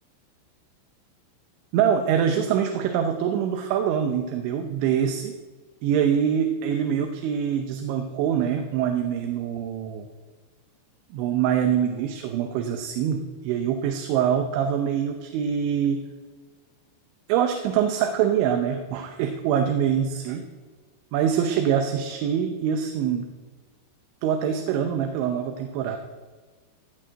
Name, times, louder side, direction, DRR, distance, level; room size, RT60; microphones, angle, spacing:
voice 1, 1.7-5.3 5.8-10.1 11.1-16.0 17.3-20.4 21.1-23.2 24.2-26.0, right 8 dB, 85° right, 5 dB, 3.2 m, -24 dB
16.5 x 6.3 x 7.8 m, 1.4 s
omnidirectional pair, 5.3 m